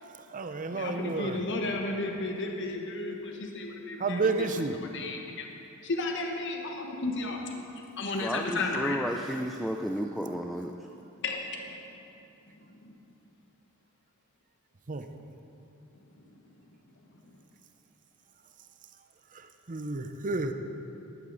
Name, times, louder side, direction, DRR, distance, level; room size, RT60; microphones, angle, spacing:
voice 1, 0.0-1.4 4.0-4.8 14.9-15.0 19.3-20.5, right 3 dB, 40° right, 8 dB, 0.7 m, -31 dB
voice 2, 0.7-4.5 4.9-5.5 5.8-7.4 8.0-9.1 11.2-11.4 11.7-11.8 12.8-12.9, left 2 dB, 60° left, 2 dB, 1.2 m, -33 dB
voice 3, 8.2-10.9, equal, ahead, 3 dB, 0.4 m, -33 dB
14.0 x 11.0 x 4.0 m, 2.8 s
head